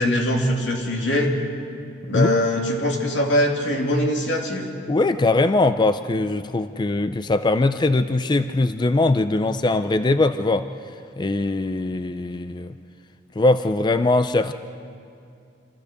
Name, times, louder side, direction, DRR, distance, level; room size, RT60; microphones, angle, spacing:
voice 1, 0.0-1.3 2.1-4.7, left 1 dB, 85° left, 0 dB, 2.7 m, -22 dB
voice 2, 4.9-10.7 11.2-12.7 13.4-14.5, left 2 dB, 25° left, 11 dB, 0.4 m, -21 dB
27.0 x 14.5 x 6.7 m, 2.4 s
head